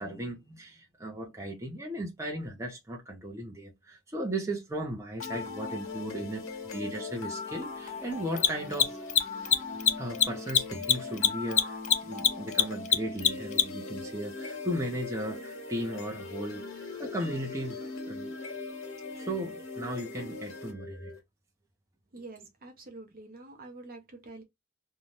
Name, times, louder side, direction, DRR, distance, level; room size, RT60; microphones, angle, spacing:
voice 1, 0.0-9.0 10.0-17.8 18.1-18.3 19.1-21.1, right 1 dB, 15° right, 0.7 m, -36 dB
sound 1, 5.2-21.2, left 4 dB, 70° left, 1.1 m, -40 dB
Mechanisms, 5.2-5.3 8.3-13.9, left 9 dB, 40° left, 0.3 m, -24 dB
voice 2, 22.1-24.4, right 2 dB, 45° right, 0.8 m, -46 dB
2.7 x 2.3 x 3.1 m
head